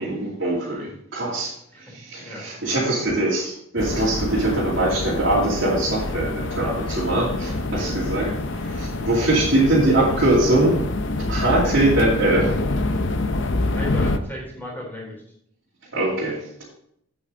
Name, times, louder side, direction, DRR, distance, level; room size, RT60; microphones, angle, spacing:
voice 1, 0.0-1.5 1.9-8.3 8.7-10.8 11.3-12.6 15.9-16.6, right 1 dB, 60° right, -8 dB, 2.6 m, -22 dB
voice 2, 1.7-2.8 4.4-4.5 7.4-8.4 9.2-9.3 9.6-10.3 11.6-11.7 13.7-15.1, equal, 10° left, -2 dB, 3.5 m, -37 dB
sound 1, 3.8-14.2, left 2 dB, 60° left, 0.7 m, -26 dB
8.5 x 8.2 x 3.8 m, 0.72 s
head